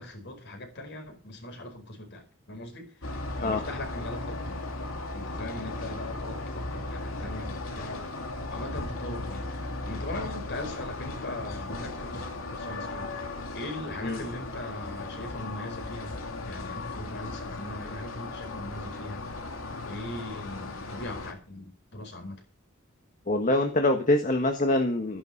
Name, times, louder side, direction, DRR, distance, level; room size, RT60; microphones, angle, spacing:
voice 1, 0.0-4.6 5.1-8.1 8.5-13.1 13.5-16.2 16.4-19.2 19.8-22.4, left 1 dB, 60° left, 4.8 m, -40 dB
sound 1, 3.0-21.3, left 2 dB, 80° left, 2.7 m, -36 dB
voice 2, 23.3-25.2, left 2 dB, 40° left, 1.6 m, -24 dB
14.0 x 10.5 x 5.5 m
head